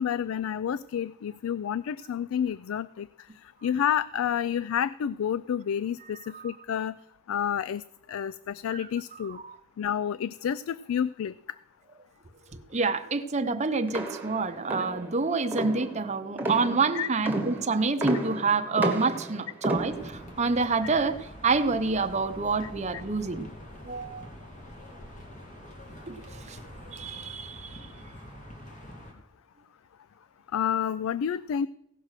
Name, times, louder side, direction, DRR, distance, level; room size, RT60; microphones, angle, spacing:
voice 1, 0.0-3.1 3.6-7.0 7.3-7.8 8.1-9.4 9.8-11.3 16.9-17.1 30.5-31.7, left 8 dB, 90° left, 17 dB, 0.3 m, -29 dB
voice 2, 12.7-23.5 23.8-24.3 26.1-26.6 26.9-27.8, right 4 dB, 35° right, 7 dB, 0.8 m, -28 dB
sound 1, 13.9-20.4, right 1 dB, 10° right, 1.5 m, -32 dB
sound 2, 19.7-29.1, equal, 40° left, 2.4 m, -45 dB
16.5 x 6.1 x 6.5 m, 0.80 s
head